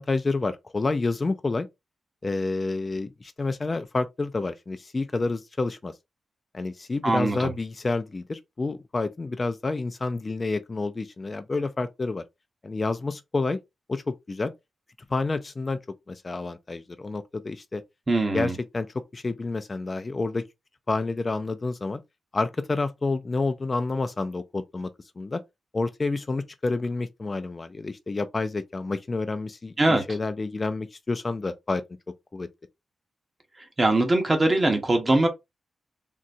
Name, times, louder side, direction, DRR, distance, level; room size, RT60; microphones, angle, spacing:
voice 1, 0.0-1.7 2.2-5.9 6.5-12.2 12.6-13.6 13.9-14.5 15.1-15.8 16.1-17.8 18.3-18.9 19.1-20.5 20.9-22.0 22.3-24.9 25.2-25.4 25.7-31.8 32.3-32.5, left 3 dB, 35° left, 0.3 m, -29 dB
voice 2, 7.0-7.5 18.1-18.5 29.8-30.0 33.8-35.3, right 2 dB, 30° right, 0.9 m, -21 dB
3.8 x 2.2 x 2.6 m
cardioid pair, 80°, 0 cm